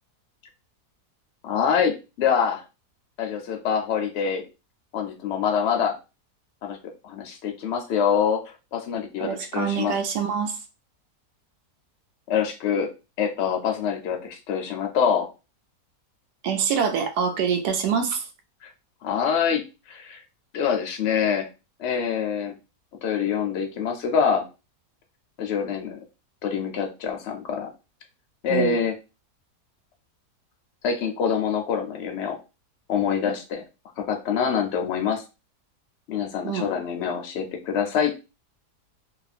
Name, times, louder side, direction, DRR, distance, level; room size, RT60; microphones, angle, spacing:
voice 1, 1.4-2.6 3.2-4.5 4.9-6.0 6.6-6.8 7.0-8.4 8.7-10.0 12.3-12.9 13.2-15.3 18.6-18.7 19.0-19.6 19.9-20.2 20.5-21.5 21.8-22.5 23.0-24.5 25.4-26.0 26.4-27.7 28.4-29.0 30.8-32.4 32.9-33.6 34.0-35.2 36.1-38.1, left 7 dB, 60° left, 3 dB, 0.7 m, -25 dB
voice 2, 9.2-10.5 16.4-18.2 28.5-28.8 36.4-36.7, right 7 dB, 85° right, 6 dB, 1.2 m, -25 dB
2.9 x 2.4 x 2.4 m, 0.29 s
omnidirectional pair, 1.8 m